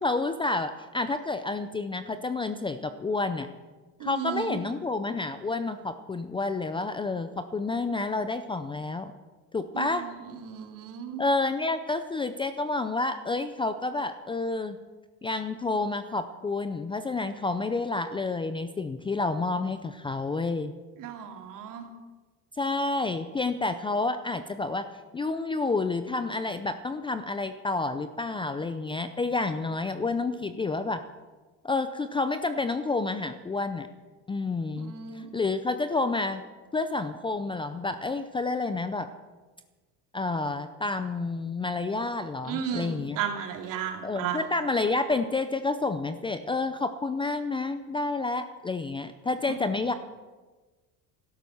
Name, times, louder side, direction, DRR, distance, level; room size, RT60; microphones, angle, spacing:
voice 1, 0.0-3.5 4.0-9.1 9.5-10.1 11.2-14.8 15.2-20.7 22.6-24.9 25.1-31.0 31.6-33.9 34.3-36.4 36.7-39.1 40.1-43.2 44.0-49.9, left 3 dB, 15° left, 10 dB, 0.5 m, -29 dB
voice 2, 4.0-4.6 9.7-11.2 21.0-21.9 34.8-35.3 42.4-44.4, right 8 dB, 55° right, 3 dB, 2.8 m, -34 dB
16.0 x 13.0 x 6.4 m, 1.3 s
cardioid pair, 145°, 38 cm